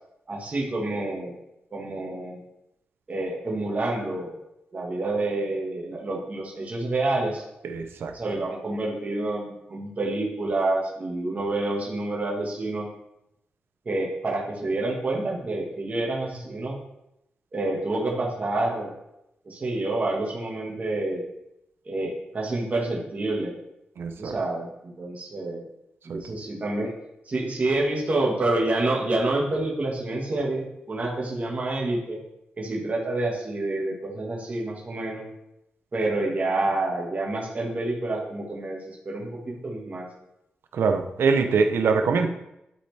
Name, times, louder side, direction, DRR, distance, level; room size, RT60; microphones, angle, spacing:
voice 1, 0.3-1.3 1.7-2.4 3.1-4.4 4.7-7.4 8.1-12.9 13.9-16.8 17.5-18.9 19.5-21.3 21.9-23.5 24.2-25.6 26.1-26.9 27.3-32.2 32.6-35.3 35.9-40.1, right 2 dB, 40° right, -3 dB, 1.7 m, -28 dB
voice 2, 7.6-8.1 24.0-24.4 26.1-26.2 40.7-42.3, right 5 dB, 85° right, 6 dB, 0.7 m, -23 dB
11.0 x 4.3 x 3.4 m, 0.85 s
wide cardioid pair, 110°, 4 cm